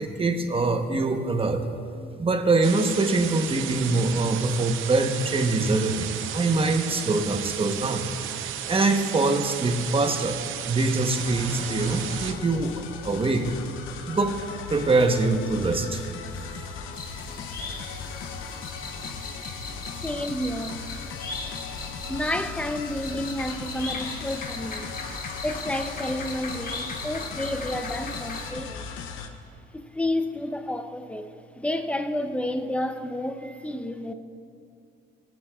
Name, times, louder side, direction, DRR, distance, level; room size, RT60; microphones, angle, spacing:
voice 1, 0.0-1.6 2.2-8.1 8.7-10.4 10.7-13.5 14.1-14.4 14.7-16.0 16.6-16.7, right 3 dB, 30° right, 5 dB, 1.0 m, -24 dB
sound 1, 2.6-12.3, right 10 dB, 80° right, 0.7 m, -34 dB
sound 2, 11.1-29.3, left 6 dB, 85° left, 0.8 m, -38 dB
sound 3, 16.9-28.5, left 3 dB, 45° left, 1.7 m, -38 dB
voice 2, 20.0-20.8 22.1-24.9 25.4-28.9 29.7-31.3 31.6-34.1, left 1 dB, 5° left, 8 dB, 0.7 m, -30 dB
23.0 x 9.2 x 2.4 m, 2.5 s
cardioid pair, 90°, 20 cm